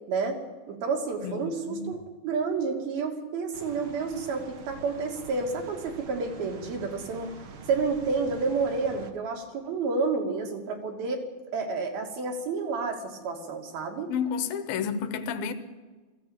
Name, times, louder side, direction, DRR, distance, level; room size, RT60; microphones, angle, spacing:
voice 1, 0.1-0.4 0.7-7.3 7.7-11.2 11.5-14.1, right 4 dB, 80° right, 4.2 m, -30 dB
voice 2, 1.2-1.9 14.1-15.5, left 7 dB, 75° left, 3.0 m, -31 dB
sound 1, 3.5-9.1, right 3 dB, 50° right, 1.6 m, -46 dB
20.0 x 15.5 x 8.7 m
omnidirectional pair, 4.3 m